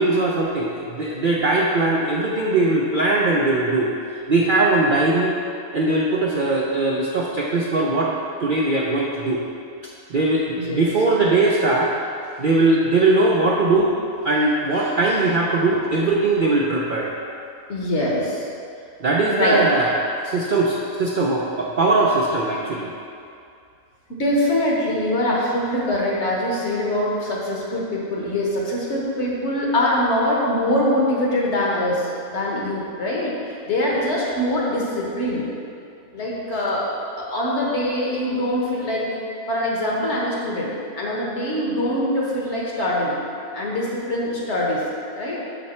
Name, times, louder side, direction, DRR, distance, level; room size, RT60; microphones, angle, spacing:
voice 1, 0.0-3.9 4.3-5.4 5.7-9.4 10.1-11.9 12.4-14.0 14.2-17.1 19.0-20.0 20.2-22.9, right 2 dB, 55° right, -3 dB, 0.6 m, -20 dB
voice 2, 10.5-10.9 14.7-15.2 17.7-18.5 19.3-19.6 24.1-33.4 33.7-35.5 36.1-36.9 37.2-39.1 39.5-43.1 43.5-44.8 45.1-45.4, left 1 dB, 50° left, -4 dB, 1.5 m, -23 dB
6.7 x 6.3 x 4.3 m, 2.4 s
omnidirectional pair, 1.6 m